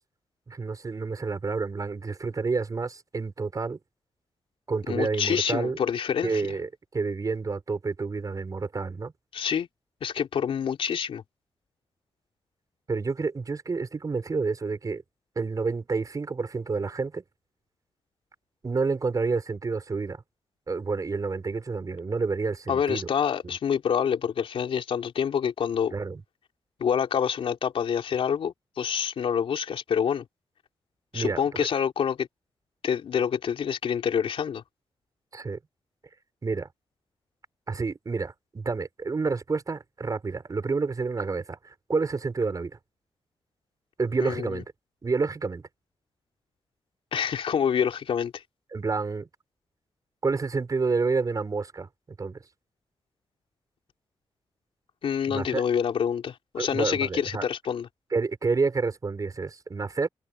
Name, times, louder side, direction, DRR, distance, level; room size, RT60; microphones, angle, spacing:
voice 1, 0.5-3.8 4.7-5.8 6.2-9.1 12.9-15.0 15.4-17.2 18.6-20.2 20.7-23.1 23.4-23.6 25.9-26.2 31.1-31.7 35.3-35.6 36.4-36.7 37.7-42.8 44.0-44.6 45.0-45.6 48.7-49.3 50.2-51.9 52.2-52.4 55.3-55.6 56.6-57.4 58.1-60.1, right 4 dB, 40° right, 5.8 m, -29 dB
voice 2, 4.9-6.5 9.3-9.7 10.0-11.2 22.7-25.9 26.8-30.3 31.1-32.3 32.8-34.6 44.2-44.6 47.1-48.4 55.0-57.9, left 7 dB, 75° left, 3.6 m, -27 dB
cardioid pair, 85°, 9 cm